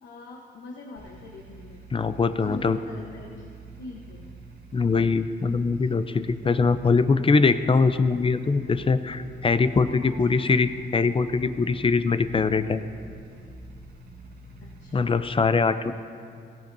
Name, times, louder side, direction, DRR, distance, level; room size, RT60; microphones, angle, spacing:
voice 1, 0.0-1.8 2.3-3.5 3.8-4.3 10.0-10.3 14.6-15.1, left 3 dB, 90° left, 0 dB, 1.0 m, -43 dB
sound 1, 1.0-15.1, right 3 dB, 60° right, 1.5 m, -46 dB
voice 2, 1.9-2.8 4.7-12.8 14.9-15.9, left 4 dB, 30° left, 12 dB, 0.5 m, -22 dB
16.5 x 16.5 x 2.7 m, 2.4 s
cardioid pair, 95°, 19 cm